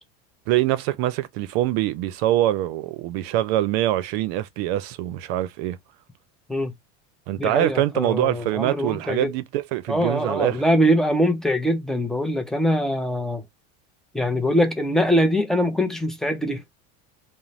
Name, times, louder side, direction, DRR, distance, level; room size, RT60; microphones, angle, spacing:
voice 1, 0.5-5.8 7.3-10.6, right 14 dB, 65° right, 0.6 m, -24 dB
voice 2, 7.4-9.3 9.9-13.4 14.1-16.6, equal, ahead, 0.4 m, -23 dB
3.0 x 2.1 x 2.6 m
supercardioid pair, 135°, 34 cm